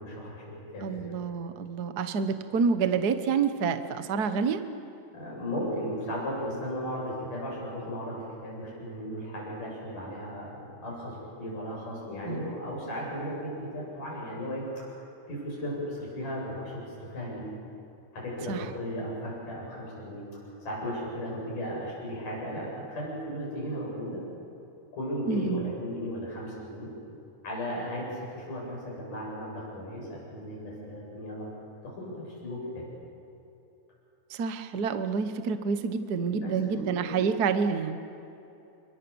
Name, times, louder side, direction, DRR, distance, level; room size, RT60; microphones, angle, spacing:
voice 1, 0.0-1.0 5.1-14.9 15.3-17.4 18.1-24.2 24.9-26.9 27.4-31.5 31.8-32.8 36.2-37.2, equal, 75° left, -4 dB, 9.5 m, -36 dB
voice 2, 0.8-4.6 12.2-12.6 18.5-18.7 25.3-25.7 34.3-38.2, right 5 dB, 70° right, 9 dB, 0.9 m, -28 dB
29.0 x 24.0 x 7.1 m, 2.9 s
omnidirectional pair, 3.7 m